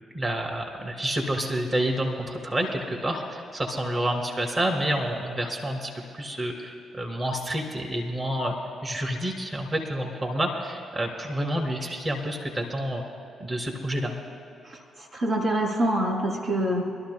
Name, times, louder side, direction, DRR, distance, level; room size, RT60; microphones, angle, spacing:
voice 1, 0.1-8.5 8.8-13.0 13.4-14.1, right 1 dB, 35° right, 2 dB, 2.7 m, -29 dB
voice 2, 14.6-16.8, right 1 dB, 55° right, -3 dB, 2.5 m, -26 dB
25.5 x 13.0 x 2.2 m, 2.6 s
hypercardioid pair, 45°, 0 cm